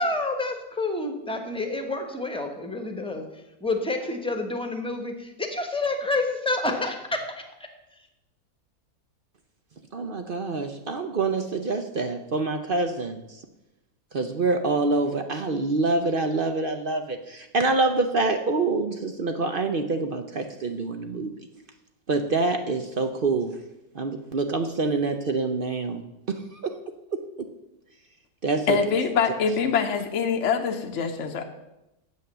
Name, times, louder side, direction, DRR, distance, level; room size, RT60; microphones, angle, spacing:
voice 1, 0.0-7.5, left 2 dB, 5° left, 4 dB, 1.0 m, -29 dB
voice 2, 9.9-13.2 14.1-21.3 22.1-23.6 23.9-26.0 26.3-26.7 28.4-29.0, right 3 dB, 50° right, 6 dB, 0.6 m, -26 dB
voice 3, 28.7-31.4, left 6 dB, 55° left, 4 dB, 1.1 m, -24 dB
8.3 x 7.6 x 6.8 m, 0.93 s
omnidirectional pair, 1.7 m